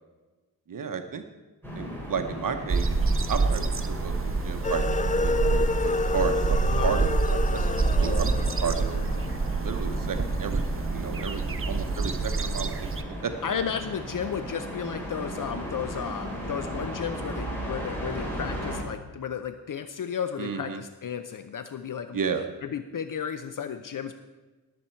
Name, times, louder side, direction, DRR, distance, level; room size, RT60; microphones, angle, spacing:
voice 1, 0.7-1.2 1.8-2.9 3.3-9.0 9.5-12.9 13.2-13.3 20.4-20.8 22.1-22.4, right 6 dB, 65° right, 6 dB, 0.9 m, -33 dB
sound 1, 1.6-18.8, equal, 5° left, 3.9 m, -36 dB
sound 2, 2.7-13.0, right 4 dB, 40° right, 0.8 m, -27 dB
sound 3, 4.6-10.1, left 4 dB, 25° left, 0.4 m, -30 dB
voice 2, 13.4-22.2 22.6-24.1, left 7 dB, 65° left, 9 dB, 0.7 m, -33 dB
18.5 x 7.9 x 4.4 m, 1.2 s
wide cardioid pair, 95°, 35 cm